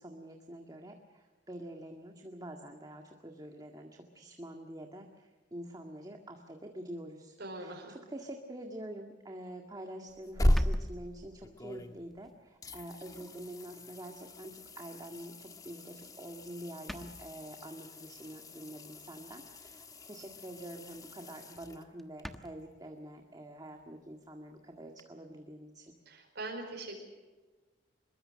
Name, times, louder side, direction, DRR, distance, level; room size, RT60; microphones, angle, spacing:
voice 1, 0.0-25.9, right 1 dB, 20° right, 3 dB, 1.9 m, -46 dB
voice 2, 7.4-8.0 26.1-27.0, right 2 dB, 65° right, -1 dB, 4.8 m, -41 dB
sound 1, 9.7-9.8 10.5-11.5 12.1-12.4 12.8-12.9 14.2-14.3 16.0-16.3 16.6-16.7 16.9-17.5 19.4-19.9 20.3-20.5 20.9-21.0 21.2-21.3 21.6-21.7 22.0-22.5, equal, ahead, 1.2 m, -48 dB
sound 2, 10.1-12.2 12.6-22.2 25.0-25.1, equal, 20° left, 1.4 m, -37 dB
25.5 x 22.0 x 6.5 m, 1.3 s
head